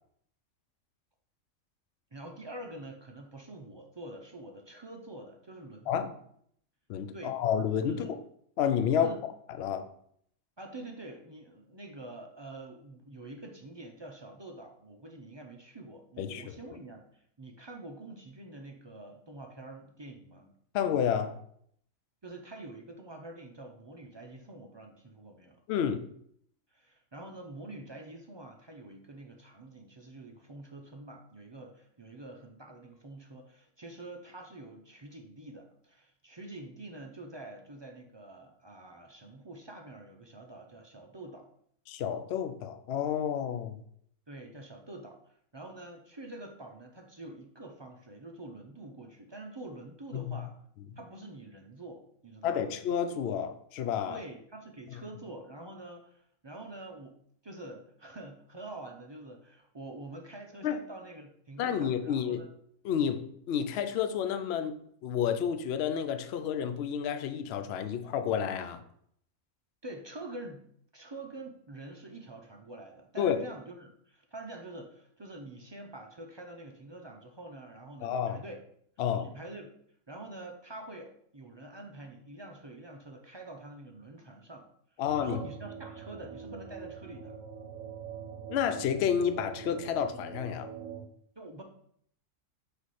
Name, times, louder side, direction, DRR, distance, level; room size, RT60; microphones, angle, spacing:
voice 1, 2.1-6.1 7.1-7.4 7.9-8.1 9.0-9.2 10.6-20.5 22.2-25.6 26.7-41.5 44.3-50.6 51.0-52.7 54.1-57.2 57.4-62.5 63.0-63.1 69.8-70.7 70.9-78.6 79.2-79.7 80.1-84.7 85.2-87.4 91.4-91.6, right 2 dB, 35° right, 0.4 m, -46 dB
voice 2, 6.9-8.2 8.6-9.2 9.6-9.9 16.2-16.4 20.7-21.4 25.7-26.0 41.9-43.8 50.1-50.4 52.4-54.2 60.6-60.8 61.6-62.4 62.8-68.8 73.2-73.4 78.0-78.4 79.0-79.3 85.0-85.4 88.5-90.7, left 8 dB, 60° left, 0.7 m, -30 dB
sound 1, 85.0-91.1, right 7 dB, 75° right, 1.0 m, -44 dB
5.2 x 4.2 x 4.7 m
omnidirectional pair, 1.4 m